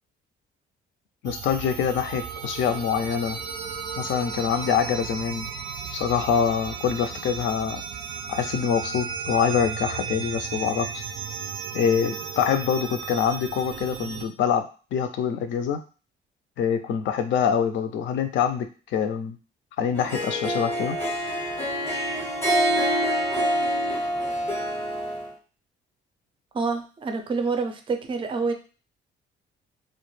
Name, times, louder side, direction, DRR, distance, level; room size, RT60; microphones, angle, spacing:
voice 1, 1.2-3.4 4.0-5.5 5.9-7.8 8.3-11.0 11.7-15.8 16.6-19.4 19.8-21.0, left 7 dB, 70° left, 8 dB, 0.4 m, -25 dB
sound 1, 1.2-14.3, right 6 dB, 90° right, 0.4 m, -35 dB
Harp, 19.9-25.3, equal, 10° left, 0.6 m, -26 dB
voice 2, 26.5-28.5, right 4 dB, 25° right, 6 dB, 0.4 m, -27 dB
2.2 x 2.1 x 3.1 m, 0.35 s
cardioid pair, 90°, 20 cm